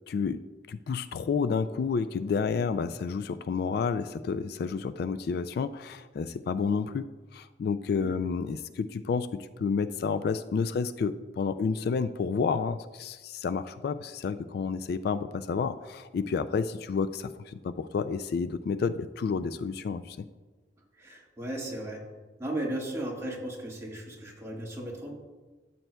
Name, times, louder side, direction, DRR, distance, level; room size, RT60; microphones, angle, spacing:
voice 1, 0.1-0.4 0.7-7.1 7.3-20.2, left 5 dB, 60° left, 13 dB, 0.3 m, -30 dB
voice 2, 21.0-22.0 22.4-25.1, right 1 dB, 15° right, -3 dB, 1.8 m, -35 dB
13.0 x 7.8 x 2.3 m, 1.3 s
head